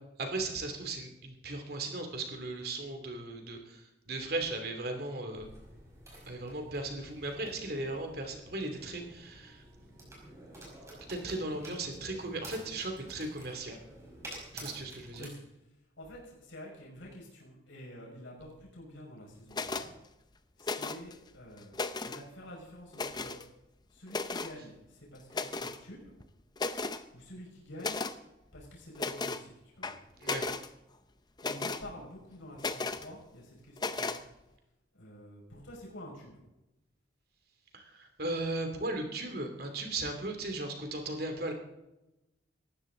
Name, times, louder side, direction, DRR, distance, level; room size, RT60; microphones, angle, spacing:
voice 1, 0.2-5.5 6.3-9.6 11.1-13.8 14.5-15.3 30.2-30.5 37.7-41.5, right 2 dB, 55° right, 5 dB, 2.8 m, -37 dB
sound 1, 5.3-15.3, right 1 dB, 15° right, 5.2 m, -50 dB
voice 2, 16.0-19.9 20.6-23.4 23.9-26.1 27.1-28.0 28.5-29.9 31.4-34.2 34.9-36.4, equal, 90° left, -3 dB, 5.8 m, -48 dB
sound 2, 19.5-19.9 20.6-21.1 21.6-22.2 22.9-23.4 24.1-24.5 25.3-25.8 26.2-26.3 26.6-27.0 27.8-28.2 29.0-29.4 29.8-30.7 31.4-31.8 32.6-33.1 33.8-34.2, left 3 dB, 20° left, 0.6 m, -35 dB
19.0 x 14.5 x 3.9 m, 0.95 s
head